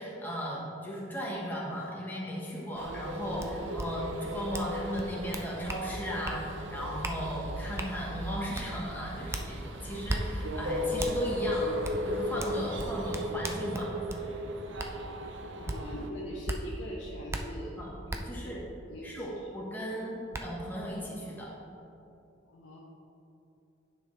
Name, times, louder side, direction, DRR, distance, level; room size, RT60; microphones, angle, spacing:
voice 1, 0.0-11.8 12.0-14.3 17.8-17.9 18.2-18.6 19.0-21.5, equal, 10° left, -5 dB, 1.3 m, -36 dB
sound 1, 2.7-16.1, left 1 dB, 65° right, 0.6 m, -36 dB
sound 2, 3.4-3.5 3.8-3.9 4.5-4.7 5.0-5.8 6.2-6.4 7.0-7.2 7.8-7.9 8.5-8.7 9.3-9.5 10.1-10.2 11.0-11.1 11.8-12.0 12.4-14.2 14.8-14.9 15.7-15.8 16.5-16.6 17.3-17.4 18.1-18.2 19.7-19.8 20.3-20.4, right 2 dB, 15° right, 0.4 m, -35 dB
voice 2, 15.6-17.8 18.1-19.5 22.5-22.8, equal, 65° left, -4 dB, 0.8 m, -42 dB
9.8 x 5.6 x 3.3 m, 2.8 s
head